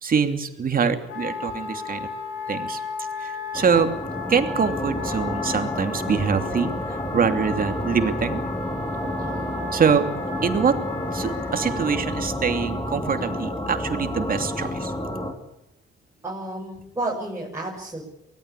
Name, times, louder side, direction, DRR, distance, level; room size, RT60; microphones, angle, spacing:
voice 1, 0.0-2.1 2.5-2.8 3.2-3.9 4.3-8.4 9.7-10.0 10.4-10.8 11.1-14.9, right 6 dB, 45° right, 7 dB, 2.9 m, -24 dB
Wind instrument woodwind instrument, 1.1-11.9, left 4 dB, 85° left, 6.7 m, -35 dB
sound 1, 3.5-15.3, left 1 dB, 20° left, 4.7 m, -30 dB
voice 2, 9.2-9.5 16.2-18.0, right 2 dB, 15° right, -4 dB, 6.6 m, -32 dB
24.0 x 18.5 x 8.5 m, 0.84 s
cardioid pair, 90°, 20 cm